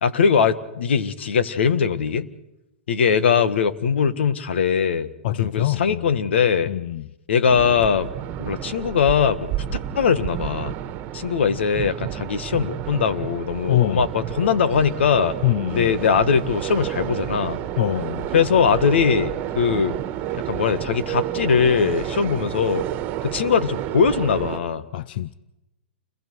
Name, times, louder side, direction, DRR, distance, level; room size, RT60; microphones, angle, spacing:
voice 1, 0.0-2.3 2.9-5.1 5.4-6.7 7.3-8.1 8.4-10.7 11.1-15.4 15.8-17.6 18.3-20.0 20.3-22.9 23.2-24.8, left 6 dB, 75° left, 1.7 m, -21 dB
voice 2, 5.2-6.2 6.7-7.1 13.7-14.1 15.4-15.9 17.8-18.3 24.9-25.3, left 13 dB, 55° left, 0.7 m, -24 dB
sound 1, 7.5-24.6, right 12 dB, 30° right, 1.7 m, -30 dB
29.5 x 22.0 x 4.8 m
hypercardioid pair, 125°, 6 cm